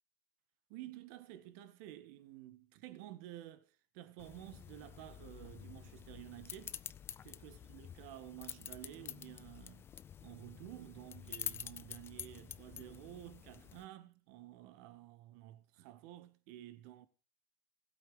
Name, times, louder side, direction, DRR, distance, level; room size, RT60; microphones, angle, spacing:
voice 1, 0.7-6.8 7.2-9.9 10.2-17.1, right 14 dB, 50° right, 1.8 m, -52 dB
sound 1, 4.2-13.9, left 9 dB, 20° left, 0.5 m, -48 dB
16.0 x 8.3 x 5.1 m
hypercardioid pair, 125°, 12 cm